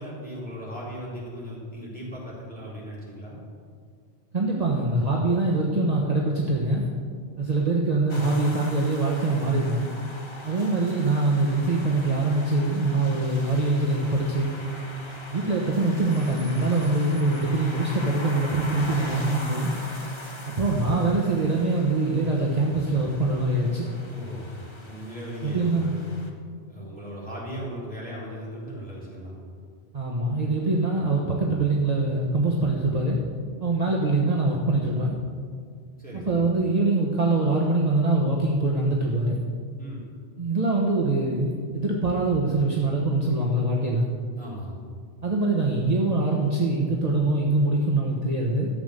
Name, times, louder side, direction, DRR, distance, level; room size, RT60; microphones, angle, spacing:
voice 1, 0.0-3.4 24.1-24.5 24.8-26.1 26.7-29.3 36.0-36.5 39.8-40.0 44.4-44.7, equal, 10° left, -7 dB, 4.1 m, -37 dB
voice 2, 4.3-6.9 7.4-9.9 10.4-14.5 15.3-19.7 20.6-23.9 25.4-26.0 29.9-33.2 33.6-35.2 36.1-39.4 40.4-44.1 45.2-48.7, right 2 dB, 35° right, -2 dB, 1.2 m, -23 dB
sound 1, 8.1-26.3, left 2 dB, 25° left, 1.3 m, -41 dB
13.0 x 7.8 x 6.6 m, 2.1 s
omnidirectional pair, 1.1 m